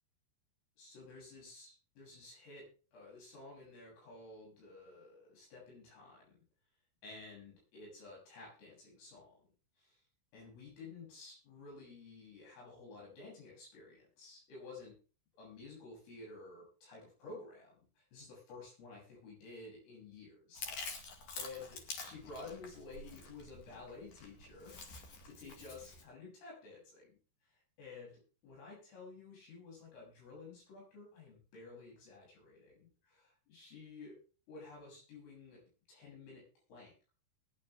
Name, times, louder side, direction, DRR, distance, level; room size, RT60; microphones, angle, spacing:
voice 1, 0.8-6.4 7.0-9.4 9.8-10.0 10.3-15.0 15.4-21.1 21.4-24.7 25.2-27.2 27.5-34.2 34.5-35.6 35.9-36.4 36.7-37.1, left 3 dB, 80° left, -3 dB, 10.5 m, -52 dB
Chewing mastication, 20.5-26.0, left 4 dB, 55° left, 2.8 m, -48 dB
20.0 x 10.0 x 3.5 m, 0.35 s
omnidirectional pair, 5.7 m